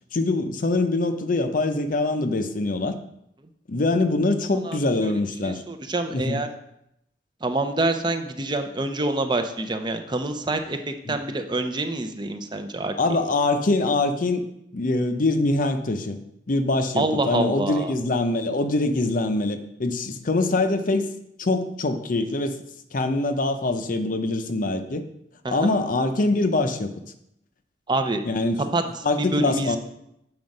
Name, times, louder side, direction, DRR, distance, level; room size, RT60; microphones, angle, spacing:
voice 1, 0.1-3.0 3.7-5.6 6.1-6.4 11.1-11.2 13.0-14.4 14.7-16.2 16.5-21.1 21.4-22.6 22.9-25.0 25.5-26.9 28.3-28.6 29.0-29.8, left 2 dB, 50° left, 8 dB, 0.6 m, -24 dB
voice 2, 4.6-5.1 5.4-6.5 7.4-12.9 17.0-17.9 25.4-25.7 27.9-28.2 28.7-28.8 29.2-29.8, right 2 dB, 25° right, 7 dB, 0.6 m, -26 dB
7.7 x 4.7 x 5.3 m, 0.78 s
head